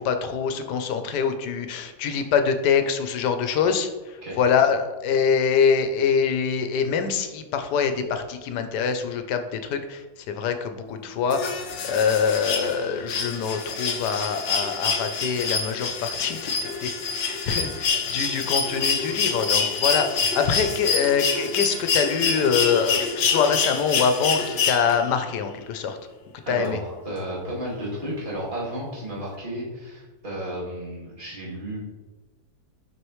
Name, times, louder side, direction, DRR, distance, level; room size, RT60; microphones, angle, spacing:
voice 1, 0.0-3.9 4.4-11.4 11.8-26.0 26.5-26.8, left 6 dB, 85° left, 7 dB, 1.2 m, -24 dB
sound 1, 11.3-25.2 26.6-26.7, left 5 dB, 55° left, 0.8 m, -26 dB
voice 2, 26.4-31.8, equal, 30° right, -6 dB, 2.1 m, -33 dB
6.2 x 5.2 x 3.1 m, 1.2 s
omnidirectional pair, 1.7 m